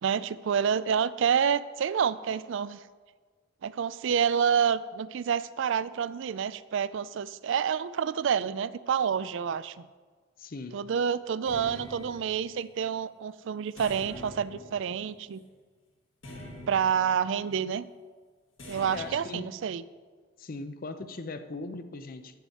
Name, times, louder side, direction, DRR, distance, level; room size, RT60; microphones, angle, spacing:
voice 1, 0.0-2.8 3.6-9.9 10.7-15.4 16.7-17.9 18.7-19.8, right 7 dB, 65° right, 16 dB, 0.4 m, -28 dB
voice 2, 10.4-10.8 18.8-19.5 20.4-22.4, left 3 dB, 45° left, 10 dB, 0.6 m, -39 dB
sound 1, 11.4-12.7 13.8-15.4 16.2-17.4 18.6-19.4, left 1 dB, 70° left, 1.9 m, -45 dB
10.5 x 8.1 x 4.2 m, 1.5 s
head